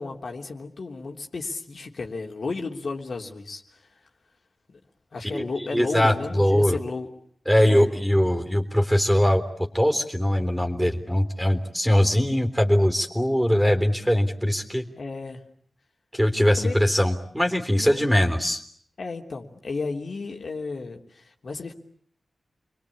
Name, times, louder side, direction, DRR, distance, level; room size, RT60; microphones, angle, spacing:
voice 1, 0.0-4.0 4.7-4.8 5.1-7.1 7.5-7.9 15.0-15.4 16.6-16.8 17.7-18.0 19.0-21.7, left 4 dB, 60° left, 2 dB, 3.2 m, -33 dB
voice 2, 5.7-6.8 7.5-14.9 16.1-18.6, equal, ahead, 5 dB, 3.6 m, -21 dB
29.5 x 22.5 x 8.6 m, 0.63 s
wide cardioid pair, 85°, 0 cm